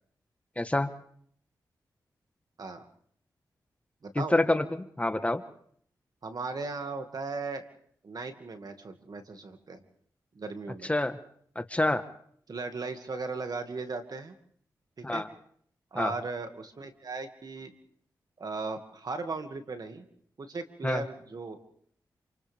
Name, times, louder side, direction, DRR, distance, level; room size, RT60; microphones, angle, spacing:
voice 1, 0.6-0.9 4.1-5.4 10.9-11.2 11.5-12.0 15.0-15.3 15.9-16.1 20.8-21.0, left 1 dB, 15° left, 9 dB, 1.5 m, -27 dB
voice 2, 4.0-4.4 6.2-7.7 8.0-9.8 10.3-10.9 12.5-14.3 15.0-15.2 15.9-17.7 18.4-20.1 20.4-21.6, right 3 dB, 60° right, 6 dB, 2.2 m, -37 dB
28.0 x 27.5 x 3.6 m, 0.62 s
cardioid pair, 55°, 8 cm